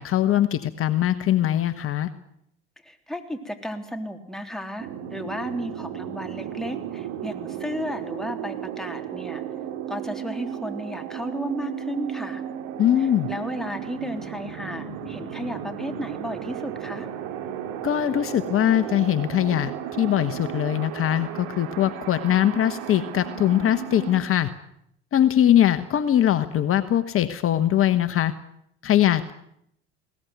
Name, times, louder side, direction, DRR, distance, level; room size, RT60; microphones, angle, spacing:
voice 1, 0.0-2.1 12.8-13.3 17.8-24.5 25.1-28.3 28.8-29.3, left 11 dB, 40° left, 9 dB, 1.3 m, -21 dB
voice 2, 2.8-9.4 9.9-12.4 13.0-17.1, equal, ahead, 4 dB, 3.4 m, -34 dB
sound 1, 4.8-24.2, right 9 dB, 65° right, 3.7 m, -34 dB
21.0 x 18.5 x 9.4 m, 0.73 s
supercardioid pair, 90°, 33 cm